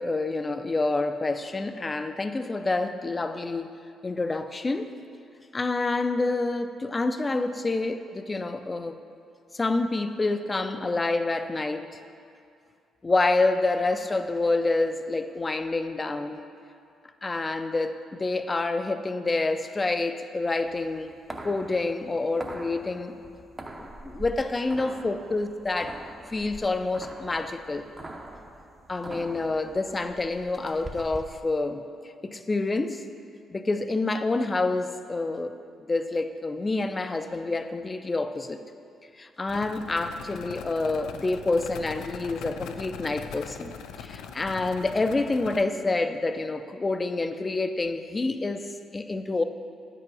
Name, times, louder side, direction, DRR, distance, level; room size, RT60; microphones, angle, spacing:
voice 1, 0.0-4.9 5.5-9.0 9.5-11.9 13.0-16.4 17.2-21.1 21.4-23.1 23.8-26.0 26.3-27.9 28.9-31.8 32.2-33.0 33.5-35.5 35.9-38.6 39.2-49.4, left 3 dB, 25° left, 9 dB, 0.5 m, -28 dB
sound 1, 20.7-31.4, right 1 dB, 15° right, 0.7 m, -43 dB
sound 2, 39.5-45.6, left 7 dB, 85° left, 0.4 m, -41 dB
8.7 x 5.5 x 5.4 m, 2.4 s
cardioid pair, 90°, 0 cm